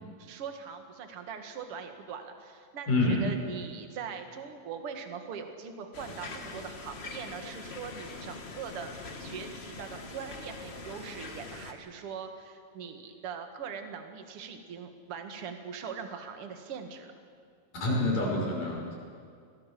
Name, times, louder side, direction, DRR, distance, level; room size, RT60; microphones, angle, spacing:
voice 1, 0.2-17.1, right 6 dB, 50° right, 6 dB, 2.4 m, -41 dB
voice 2, 2.9-3.3 17.8-18.9, left 2 dB, 75° left, -2 dB, 7.2 m, -27 dB
sound 1, 5.9-11.7, left 3 dB, 50° left, 0.7 m, -43 dB
25.5 x 17.5 x 7.6 m, 2.2 s
omnidirectional pair, 3.9 m